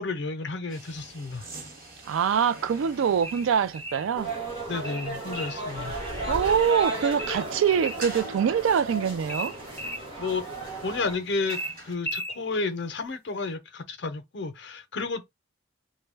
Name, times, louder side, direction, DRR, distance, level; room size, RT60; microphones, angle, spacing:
voice 1, 0.0-1.5 4.7-6.0 10.2-10.4 10.8-11.6 11.8-15.2, left 3 dB, 60° left, 0.6 m, -31 dB
sound 1, 0.7-11.9, right 2 dB, 45° right, 1.2 m, -47 dB
voice 2, 2.1-4.3 6.3-9.5, right 7 dB, 80° right, 0.3 m, -24 dB
sound 2, 3.2-4.1 4.8-5.6 7.2-8.1 9.3-10.0 11.5-12.4, equal, 10° left, 0.5 m, -35 dB
sound 3, 4.1-11.2, right 2 dB, 25° right, 1.0 m, -34 dB
2.2 x 2.2 x 3.3 m
head